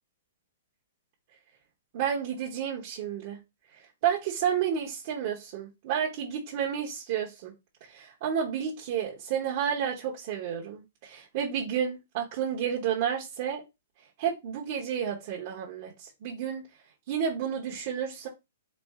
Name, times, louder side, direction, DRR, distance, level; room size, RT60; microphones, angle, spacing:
voice 1, 1.9-3.4 4.0-7.5 7.9-13.6 14.2-16.6 17.1-18.3, right 8 dB, 40° right, 1.0 m, -31 dB
4.2 x 2.6 x 3.5 m
hypercardioid pair, 170°, 0 cm